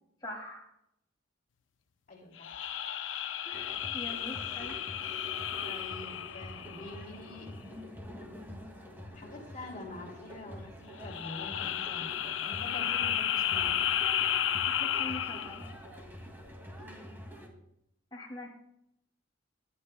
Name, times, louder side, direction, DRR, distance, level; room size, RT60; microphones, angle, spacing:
voice 1, 0.2-0.7 3.4-4.8 14.6-15.6 18.1-18.5, left 1 dB, 25° left, -3 dB, 2.4 m, -43 dB
voice 2, 2.1-2.6 5.6-7.5 9.1-13.8 16.8-17.1, left 2 dB, 45° left, 0 dB, 2.7 m, -46 dB
sound 1, 2.4-7.2 11.0-15.7, left 10 dB, 90° left, 0.6 m, -33 dB
sound 2, 3.5-17.5, equal, 10° right, 2.1 m, -46 dB
18.5 x 11.5 x 2.2 m, 0.78 s
head